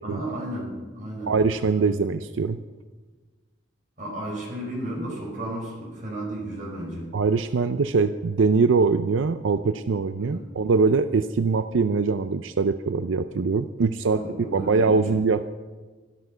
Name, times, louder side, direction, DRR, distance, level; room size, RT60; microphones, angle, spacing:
voice 1, 0.0-1.3 4.0-7.1 10.2-10.5 14.0-15.1, right 1 dB, 45° right, -3 dB, 5.6 m, -33 dB
voice 2, 1.3-2.6 7.1-14.2 14.5-15.5, right 4 dB, 90° right, 10 dB, 0.5 m, -22 dB
13.0 x 12.5 x 5.6 m, 1.3 s
head